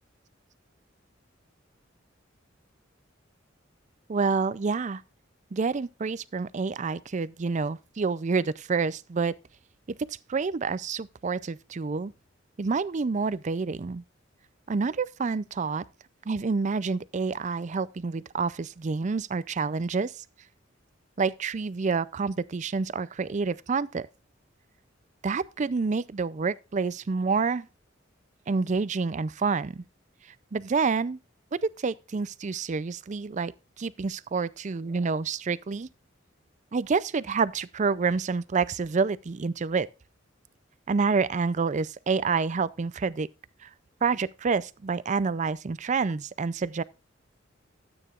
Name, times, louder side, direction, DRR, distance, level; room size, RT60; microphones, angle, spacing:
voice 1, 4.1-5.0 5.5-9.3 10.1-12.1 12.6-14.0 14.7-15.8 16.3-20.2 21.2-24.1 25.2-27.7 28.5-29.8 30.5-31.2 31.5-33.5 33.8-35.9 36.7-39.9 40.9-43.3 43.6-43.7 44.0-46.8, right 4 dB, 40° right, 0.4 m, -28 dB
13.0 x 8.9 x 2.4 m
head